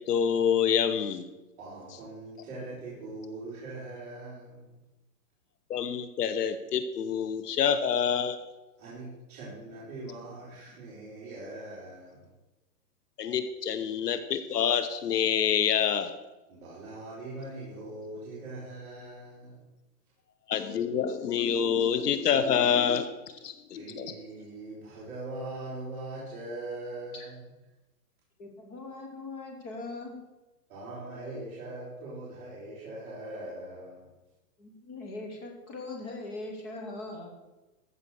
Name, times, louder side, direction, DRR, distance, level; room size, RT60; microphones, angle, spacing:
voice 1, 0.1-1.3 5.7-8.4 13.2-16.2 20.5-23.1 23.4-24.1, left 8 dB, 75° left, 11 dB, 1.1 m, -27 dB
voice 2, 1.6-4.8 8.8-12.3 16.5-19.7 23.7-27.4 30.7-34.1, right 2 dB, 35° right, -10 dB, 4.3 m, -41 dB
voice 3, 28.4-30.2 34.6-37.3, left 2 dB, 10° left, 1 dB, 0.7 m, -40 dB
14.5 x 5.7 x 6.4 m, 1.1 s
hypercardioid pair, 170°, 47 cm